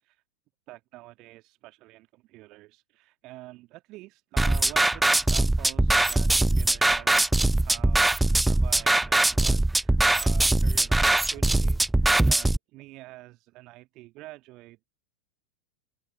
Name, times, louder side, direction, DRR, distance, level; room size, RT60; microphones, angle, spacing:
voice 1, 0.7-8.2 8.5-14.8, right 19 dB, 40° right, 2.5 m, -47 dB
sound 1, 4.4-12.6, right 2 dB, 5° right, 0.3 m, -22 dB
open air
figure-of-eight pair, 90°, 0 cm